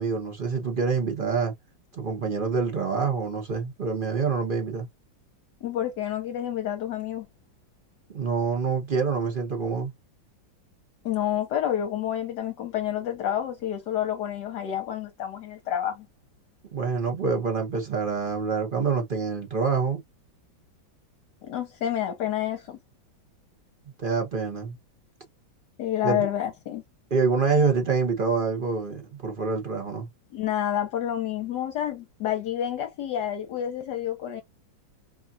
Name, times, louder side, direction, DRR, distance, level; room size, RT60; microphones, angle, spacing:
voice 1, 0.0-1.5 1.9-4.9 8.1-9.9 16.7-20.0 24.0-24.8 26.0-26.2 27.1-30.1, right 5 dB, 70° right, 0.4 m, -26 dB
voice 2, 5.6-7.3 11.0-16.1 21.4-22.8 25.8-26.8 30.3-34.4, left 11 dB, 65° left, 1.3 m, -29 dB
4.9 x 2.3 x 2.6 m
omnidirectional pair, 2.1 m